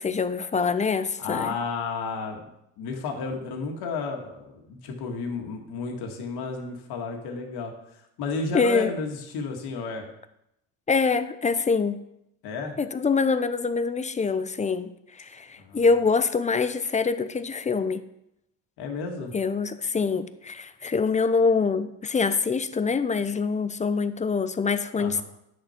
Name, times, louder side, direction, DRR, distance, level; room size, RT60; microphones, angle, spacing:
voice 1, 0.0-1.5 8.5-8.9 10.9-12.0 12.8-18.0 19.3-25.2, left 4 dB, 20° left, 12 dB, 0.5 m, -25 dB
voice 2, 1.2-2.5 2.8-10.0 12.4-12.7 15.6-15.8 18.8-19.3 25.0-25.2, left 4 dB, 70° left, 2 dB, 1.8 m, -32 dB
10.5 x 6.5 x 4.4 m, 0.81 s
cardioid pair, 105°, 40 cm